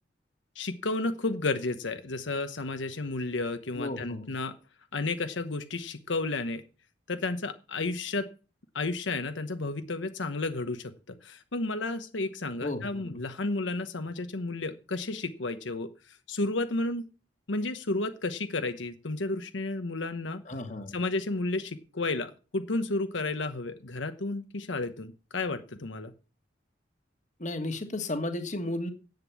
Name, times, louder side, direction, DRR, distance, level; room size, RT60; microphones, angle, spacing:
voice 1, 0.5-4.5 4.9-6.6 7.1-8.3 8.7-17.0 17.5-20.4 20.9-26.1, left 2 dB, 80° left, 9 dB, 1.0 m, -32 dB
voice 2, 3.7-4.3 12.6-13.2 20.5-20.9 27.4-28.9, left 2 dB, 40° left, 8 dB, 1.6 m, -34 dB
10.5 x 8.2 x 7.1 m, 0.36 s
head